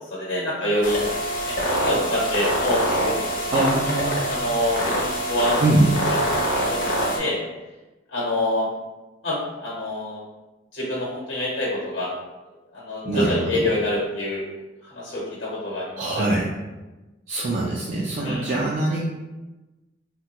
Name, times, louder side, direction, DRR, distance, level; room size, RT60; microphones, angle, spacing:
voice 1, 0.1-1.0 1.4-1.5 1.8-3.2 4.3-5.6 6.7-7.4 8.1-8.7 9.2-10.2 10.7-12.1 12.7-14.4 14.9-16.2 18.2-18.5, left 1 dB, 70° left, -5 dB, 0.9 m, -26 dB
sound 1, 0.8-7.2, equal, 50° left, 0.6 m, -25 dB
voice 2, 3.5-4.2 5.6-5.9 13.0-13.6 16.0-16.5 17.3-19.0, right 2 dB, 40° right, -5 dB, 0.4 m, -23 dB
3.1 x 2.2 x 2.9 m, 1.1 s
head